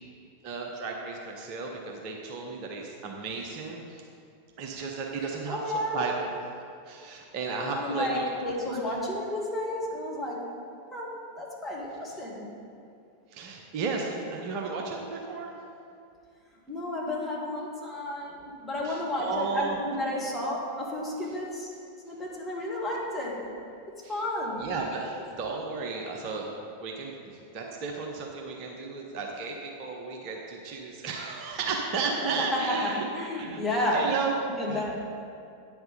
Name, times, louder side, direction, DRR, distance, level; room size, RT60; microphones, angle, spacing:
voice 1, 0.4-4.0 4.6-6.3 6.8-8.3 8.9-9.0 13.3-15.5 18.8-19.8 24.0-24.2 24.5-33.0 33.4-34.3 34.7-35.0, right 4 dB, 40° right, 0 dB, 0.9 m, -34 dB
voice 2, 5.5-6.0 7.7-10.4 10.9-12.5 16.7-21.7 22.0-23.4 24.1-24.7 32.5-34.1 34.4-35.0, left 1 dB, 5° left, -5 dB, 2.0 m, -32 dB
9.1 x 5.9 x 5.3 m, 2.4 s
figure-of-eight pair, 90°, 0 cm